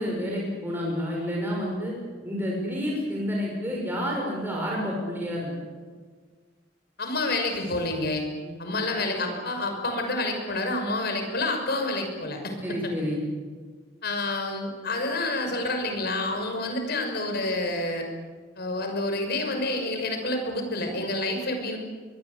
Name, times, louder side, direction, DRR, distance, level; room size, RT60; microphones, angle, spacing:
voice 1, 0.0-1.9 2.2-5.5 8.4-8.5 12.6-13.2, equal, 10° right, -3 dB, 6.1 m, -29 dB
voice 2, 7.0-8.3 8.6-12.9 14.0-18.1 18.6-21.8, left 2 dB, 60° left, 5 dB, 6.1 m, -28 dB
23.5 x 23.0 x 8.4 m, 1.5 s
head